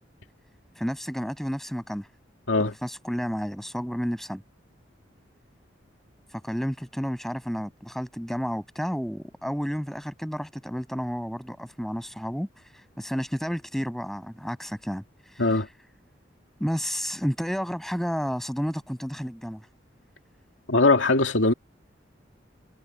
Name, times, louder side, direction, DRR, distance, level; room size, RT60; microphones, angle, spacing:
voice 1, 0.8-2.1 2.6-4.4 6.3-15.6 16.6-19.6, equal, ahead, 7.9 m, -31 dB
voice 2, 20.7-21.5, left 3 dB, 90° left, 2.4 m, -20 dB
head